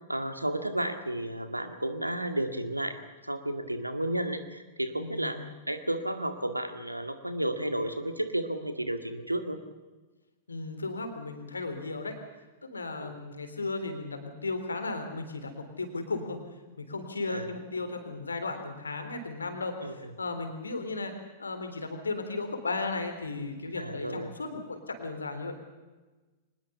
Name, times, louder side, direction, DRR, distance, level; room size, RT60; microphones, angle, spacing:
voice 1, 0.1-9.6 13.0-13.1 17.3-17.5 19.8-20.1 23.8-24.4, right 1 dB, 90° right, 9 dB, 2.0 m, -32 dB
voice 2, 5.0-5.5 10.5-12.2 12.6-16.4 16.8-21.1 21.4-25.6, left 3 dB, 75° left, 7 dB, 3.6 m, -35 dB
24.0 x 20.0 x 7.0 m, 1.2 s
figure-of-eight pair, 100°, 0 cm